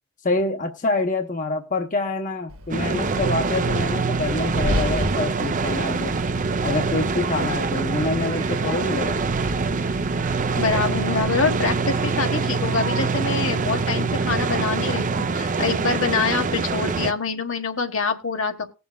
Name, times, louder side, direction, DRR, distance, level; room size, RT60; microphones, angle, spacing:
voice 1, 0.2-6.1 6.6-9.2, left 2 dB, 40° left, 5 dB, 1.0 m, -26 dB
Wind, 2.5-12.0, equal, 75° right, 1.6 m, -34 dB
sound 1, 2.7-17.1, right 4 dB, 40° right, 0.6 m, -24 dB
voice 2, 10.6-18.7, left 4 dB, 70° left, 5 dB, 1.5 m, -25 dB
19.5 x 7.0 x 2.3 m, 0.30 s
head